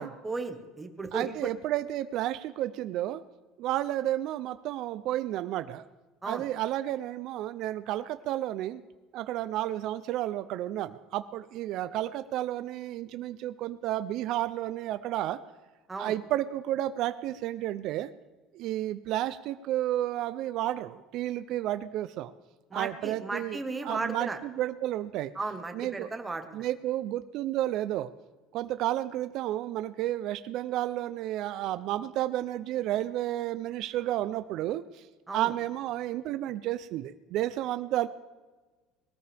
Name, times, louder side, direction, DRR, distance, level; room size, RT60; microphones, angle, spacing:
voice 1, 0.0-1.5 6.2-6.4 15.9-16.1 22.7-24.4 25.3-26.6 35.3-35.5, right 3 dB, 10° right, 6 dB, 1.2 m, -35 dB
voice 2, 1.1-3.2 3.6-5.8 6.3-8.8 9.1-15.4 16.0-18.1 18.5-22.3 22.7-25.3 25.7-26.1 26.5-28.1 28.5-35.1 35.3-38.1, right 13 dB, 50° right, 11 dB, 0.5 m, -31 dB
20.5 x 13.5 x 3.4 m, 1.3 s
cardioid pair, 165°, 0 cm